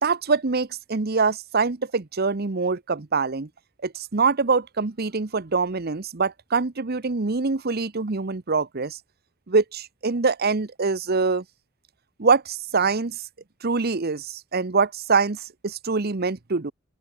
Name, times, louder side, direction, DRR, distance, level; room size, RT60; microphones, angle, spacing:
voice 1, 0.0-3.5 3.8-9.0 9.5-11.4 12.2-13.2 13.6-16.7, right 4 dB, 45° right, 0.9 m, -24 dB
open air
head